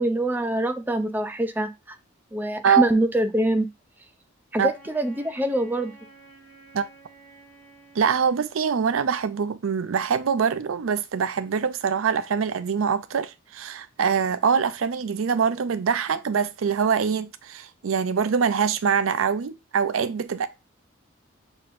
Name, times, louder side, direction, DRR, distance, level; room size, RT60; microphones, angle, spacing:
voice 1, 0.0-1.7 2.3-3.7 4.5-5.9, right 1 dB, 10° right, 0.5 m, -24 dB
Wind instrument woodwind instrument, 4.7-9.1, right 3 dB, 10° left, 2.0 m, -51 dB
voice 2, 8.0-20.5, right 6 dB, 85° right, 0.5 m, -24 dB
6.6 x 2.9 x 2.5 m
head